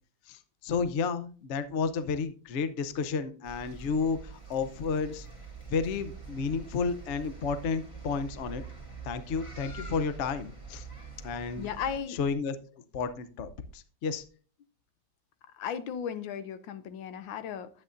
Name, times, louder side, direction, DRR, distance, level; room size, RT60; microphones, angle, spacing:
voice 1, 0.3-5.3 5.7-8.6 9.0-10.9 11.2-11.7 12.1-14.2, left 5 dB, 60° left, 11 dB, 0.7 m, -32 dB
sound 1, 3.4-12.0, right 4 dB, 15° left, 1.9 m, -45 dB
voice 2, 11.6-12.2 15.5-17.7, left 7 dB, 85° left, 12 dB, 1.5 m, -35 dB
11.0 x 8.7 x 2.5 m, 0.39 s
omnidirectional pair, 2.1 m